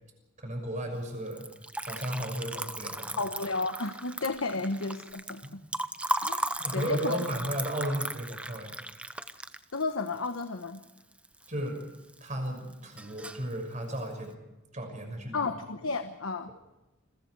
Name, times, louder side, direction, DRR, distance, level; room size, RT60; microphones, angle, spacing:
voice 1, 0.4-1.4 1.8-3.2 4.5-4.6 5.4-5.7 6.3-8.8 11.5-11.8 12.2-14.3 14.7-15.5, right 1 dB, 35° right, 4 dB, 6.2 m, -35 dB
Liquid, 1.3-11.5 11.8-12.5 12.7-13.5, right 1 dB, 5° right, 0.8 m, -36 dB
voice 2, 3.2-5.6 6.2-6.4 6.7-7.2 9.7-10.8 15.3-16.5, left 3 dB, 85° left, 8 dB, 1.2 m, -32 dB
29.0 x 22.0 x 4.8 m, 1.1 s
head